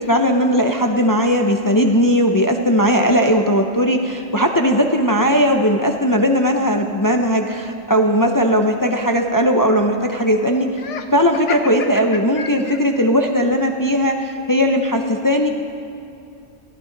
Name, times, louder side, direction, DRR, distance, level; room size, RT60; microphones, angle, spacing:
voice 1, 0.0-10.7 11.1-15.5, equal, 20° left, 3 dB, 0.6 m, -17 dB
Laughter, 10.7-13.1, left 6 dB, 75° left, 1.2 m, -30 dB
22.0 x 15.0 x 4.0 m, 2.7 s
omnidirectional pair, 1.2 m